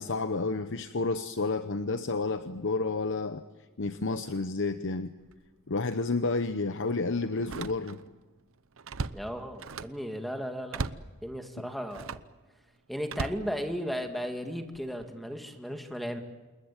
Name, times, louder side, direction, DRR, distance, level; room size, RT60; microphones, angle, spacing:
voice 1, 0.0-3.4 3.8-5.1 5.7-8.0 11.6-11.7, left 3 dB, 60° left, 10 dB, 0.9 m, -30 dB
Slam, 5.2-5.5 5.9-6.0 7.4-8.2 8.5-10.1 10.7-11.1 11.9-12.3 13.1-14.1 14.7-15.0, right 4 dB, 65° right, 0.9 m, -38 dB
voice 2, 9.1-10.8 11.2-12.2 12.9-16.2, equal, ahead, 5 dB, 2.2 m, -35 dB
28.5 x 20.5 x 9.0 m, 1.3 s
head